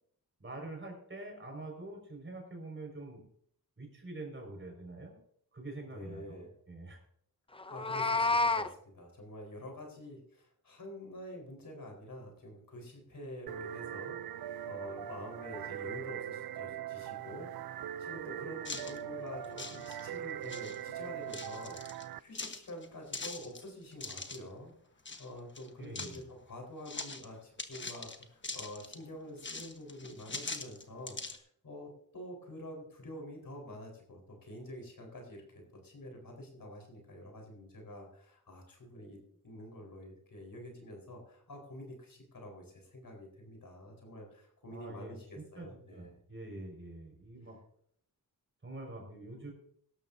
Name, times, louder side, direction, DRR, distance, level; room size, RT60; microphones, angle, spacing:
voice 1, 0.4-3.2 3.8-5.2 5.5-6.4 6.7-7.0 25.8-26.3 44.7-47.6 48.6-49.5, right 2 dB, 35° right, 1 dB, 5.4 m, -45 dB
voice 2, 5.9-6.5 7.7-35.4 35.8-39.2 39.4-46.2, left 1 dB, 65° left, 1 dB, 4.5 m, -47 dB
Meow, 7.6-8.7, left 3 dB, 15° left, 0.6 m, -29 dB
sound 1, 13.5-22.2, right 10 dB, 75° right, 0.5 m, -41 dB
sound 2, 18.6-19.0 19.4-20.2 20.4-20.8 21.3-22.1 22.3-24.4 25.1-25.3 25.6-26.2 26.9-27.3 27.6-29.0 29.4-31.4, left 3 dB, 30° left, 1.3 m, -42 dB
17.5 x 12.5 x 2.7 m, 0.66 s
wide cardioid pair, 105°, 37 cm